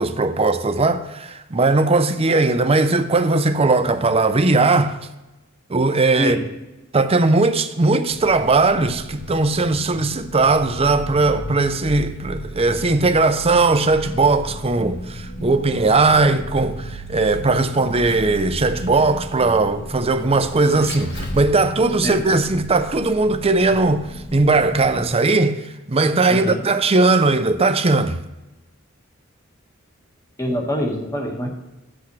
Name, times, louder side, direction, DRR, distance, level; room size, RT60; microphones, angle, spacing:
voice 1, 0.0-5.0 5.7-6.4 6.9-28.2, right 3 dB, 30° right, 0.6 m, -18 dB
Vehicle, 8.1-25.0, equal, 55° left, 1.5 m, -34 dB
voice 2, 26.3-26.7 30.4-31.5, equal, 15° left, 1.7 m, -24 dB
14.5 x 8.2 x 3.3 m
head